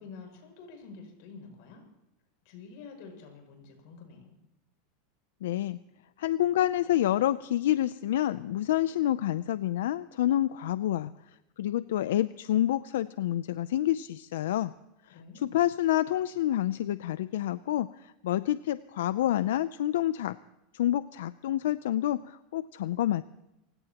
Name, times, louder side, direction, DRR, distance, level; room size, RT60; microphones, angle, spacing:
voice 1, 0.0-1.8 2.4-4.4 15.1-15.6, left 4 dB, 60° left, 4 dB, 7.3 m, -48 dB
voice 2, 5.4-5.8 6.2-11.1 11.6-14.7 15.4-20.4 20.7-23.2, left 13 dB, 90° left, 14 dB, 0.5 m, -28 dB
29.0 x 17.0 x 3.0 m, 0.93 s
supercardioid pair, 155°, 0 cm